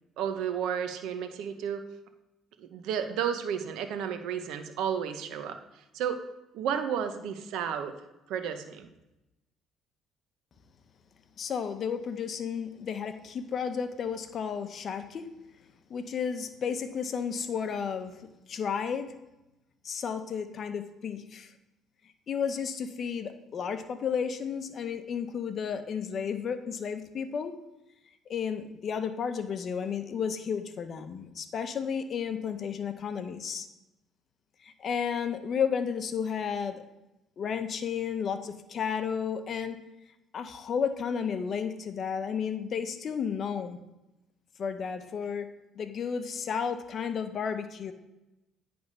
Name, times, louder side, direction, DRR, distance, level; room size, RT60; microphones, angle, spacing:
voice 1, 0.2-1.8 2.6-5.6 5.9-6.2 6.5-7.9 8.3-8.9, right 8 dB, 80° right, 8 dB, 0.8 m, -32 dB
voice 2, 11.4-15.3 15.9-18.1 18.5-19.1 19.8-21.5 22.3-27.6 28.3-33.7 34.6-36.8 37.4-39.8 40.3-43.8 44.6-45.5 45.8-47.9, left 7 dB, 50° left, 9 dB, 0.7 m, -32 dB
9.6 x 3.4 x 5.4 m, 0.96 s
cardioid pair, 95°, 0 cm